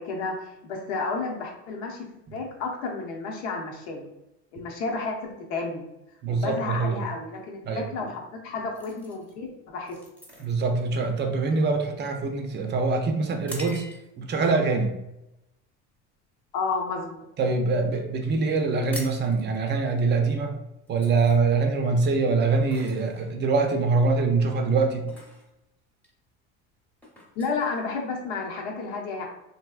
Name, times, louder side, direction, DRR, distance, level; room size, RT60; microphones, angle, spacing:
voice 1, 0.0-4.1 4.5-5.9 6.3-10.0 16.5-17.2 27.4-29.3, left 4 dB, 85° left, 0 dB, 0.9 m, -31 dB
voice 2, 6.2-7.0 7.7-7.9 10.4-13.9 14.2-14.9 17.4-20.5 20.9-25.1, right 4 dB, 35° right, 4 dB, 0.5 m, -24 dB
sound 1, 8.7-14.4 14.9-15.1 15.6-16.0 16.3-17.5 17.7-17.8 18.0-18.2 18.5-28.5, equal, 5° left, 0.8 m, -46 dB
3.3 x 2.6 x 2.4 m, 0.90 s
supercardioid pair, 115°, 33 cm